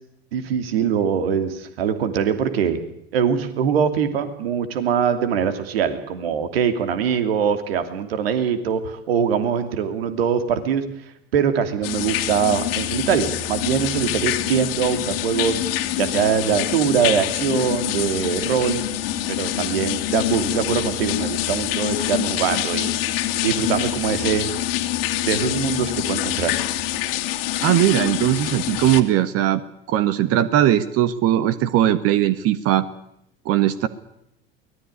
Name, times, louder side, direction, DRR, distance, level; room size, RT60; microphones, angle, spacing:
voice 1, 0.3-2.8 3.1-10.9 11.3-15.6 16.0-18.8 19.3-23.0 23.4-24.5 25.2-26.6, right 7 dB, 75° right, 9 dB, 2.9 m, -22 dB
sound 1, 11.8-29.0, left 13 dB, 70° left, 2.3 m, -25 dB
voice 2, 27.6-29.6 29.9-32.9 33.4-33.9, right 12 dB, 50° right, 13 dB, 1.4 m, -19 dB
23.5 x 19.0 x 9.9 m, 0.80 s
hypercardioid pair, 75°, 30 cm